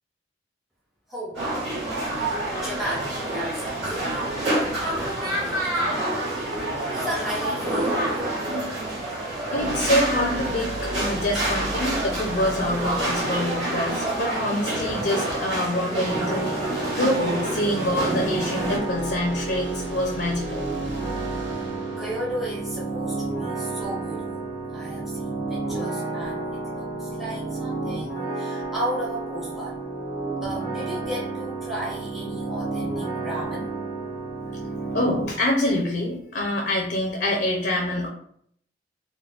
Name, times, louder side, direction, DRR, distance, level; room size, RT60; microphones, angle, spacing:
voice 1, 1.1-1.7 2.0-4.3 4.8-6.4 6.8-8.0 21.5-21.7 22.0-24.4 24.7-26.4 26.7-29.8 30.4-33.7, equal, ahead, -5 dB, 0.5 m, -34 dB
sound 1, 1.3-18.8, right 1 dB, 85° right, 1.4 m, -28 dB
voice 2, 9.5-20.6 34.9-38.1, left 1 dB, 60° left, 0 dB, 0.5 m, -26 dB
sound 2, 9.6-15.0 18.5-23.3, right 1 dB, 70° right, 0.5 m, -37 dB
sound 3, 16.0-35.2, right 3 dB, 55° right, 1.4 m, -31 dB
3.5 x 2.1 x 2.4 m, 0.66 s
head